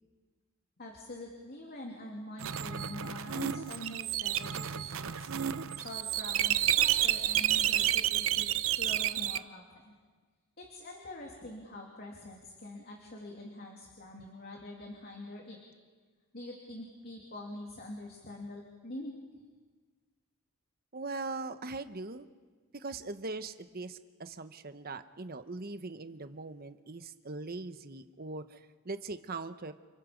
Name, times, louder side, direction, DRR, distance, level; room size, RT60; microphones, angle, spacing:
voice 1, 0.8-5.3 5.8-8.5 8.8-9.9 10.6-15.6 16.3-19.1, left 1 dB, 45° left, 0 dB, 2.8 m, -45 dB
sound 1, 2.4-9.4, right 11 dB, 65° right, 0.7 m, -30 dB
voice 2, 20.9-22.3 22.7-29.7, right 3 dB, 45° right, 10 dB, 1.0 m, -41 dB
29.0 x 27.5 x 5.2 m, 1.5 s
head